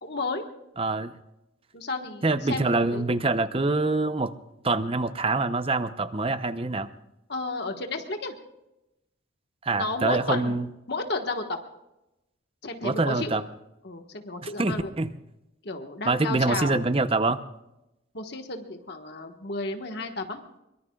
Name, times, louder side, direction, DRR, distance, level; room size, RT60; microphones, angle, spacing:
voice 1, 0.0-0.4 1.7-3.1 7.3-8.3 9.7-10.5 10.9-11.6 12.6-13.4 13.8-14.9 15.6-16.9 18.1-20.4, left 3 dB, 55° left, 4 dB, 1.4 m, -32 dB
voice 2, 0.8-1.1 2.2-4.3 4.6-6.9 9.6-10.7 12.8-13.4 14.4-15.1 16.0-17.4, right 3 dB, 30° right, 11 dB, 0.7 m, -25 dB
24.0 x 22.5 x 2.4 m, 0.91 s
head